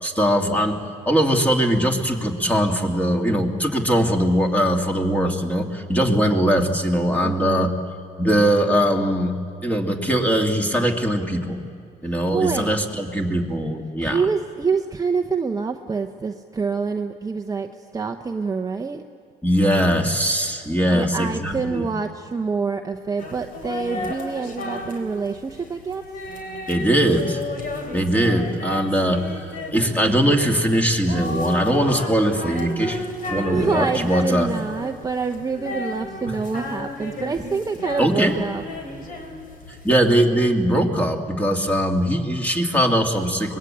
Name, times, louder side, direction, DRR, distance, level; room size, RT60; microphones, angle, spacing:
voice 1, 0.0-7.7 8.2-9.3 9.6-11.7 12.0-14.2 19.4-21.9 26.7-27.4 27.9-33.0 33.3-34.5 38.0-38.3 39.8-43.6, equal, 10° left, 2 dB, 2.4 m, -21 dB
voice 2, 7.2-7.7 12.3-12.7 14.0-19.0 20.9-26.0 33.4-38.6, right 5 dB, 20° right, 5 dB, 0.8 m, -26 dB
sound 1, 23.2-40.1, left 1 dB, 55° left, 4.0 m, -33 dB
23.5 x 20.5 x 8.7 m, 2.2 s
cardioid pair, 110°, 17 cm